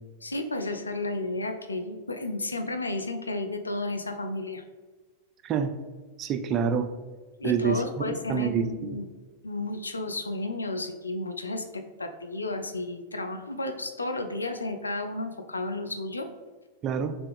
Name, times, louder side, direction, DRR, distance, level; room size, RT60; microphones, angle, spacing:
voice 1, 0.2-4.6 7.4-9.1 9.4-16.3, left 2 dB, 80° left, 6 dB, 0.3 m, -32 dB
voice 2, 5.4-5.8 6.2-6.9 7.4-9.0 16.8-17.1, right 6 dB, 30° right, 8 dB, 0.3 m, -27 dB
3.4 x 2.8 x 3.3 m, 1.3 s
figure-of-eight pair, 90°, 0 cm